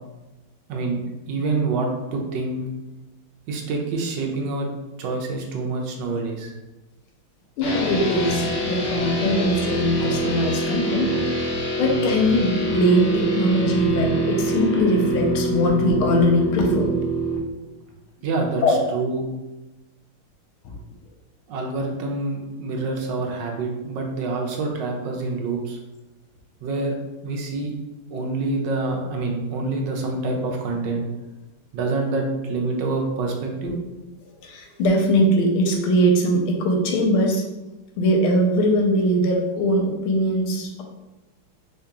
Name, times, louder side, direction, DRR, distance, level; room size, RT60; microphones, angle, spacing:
voice 1, 0.7-1.0 1.3-2.6 3.5-4.7 5.0-6.5 18.2-19.3 21.5-25.8 26.6-27.0 27.2-27.7 28.1-31.1 31.7-33.7, right 3 dB, 70° right, 1 dB, 1.2 m, -26 dB
voice 2, 7.6-11.1 11.8-17.0 18.6-18.8 20.6-20.7 33.6-33.7 34.4-37.4 38.0-40.8, equal, 85° left, 1 dB, 1.5 m, -21 dB
sound 1, 7.6-17.4, right 1 dB, 60° left, 1.4 m, -25 dB
3.6 x 2.8 x 3.5 m, 1.1 s
omnidirectional pair, 2.3 m